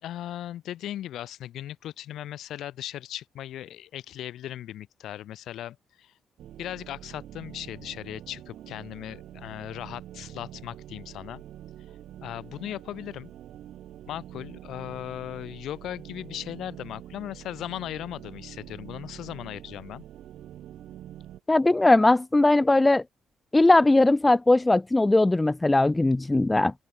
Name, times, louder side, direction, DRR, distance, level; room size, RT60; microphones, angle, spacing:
voice 1, 0.0-6.1 6.6-11.4 12.2-13.3 14.1-20.0, left 12 dB, 80° left, 6.3 m, -38 dB
sound 1, 6.4-21.4, right 12 dB, 75° right, 6.4 m, -45 dB
voice 2, 21.5-23.0 23.5-26.7, left 2 dB, 15° left, 0.5 m, -19 dB
open air
cardioid pair, 90°, 0 cm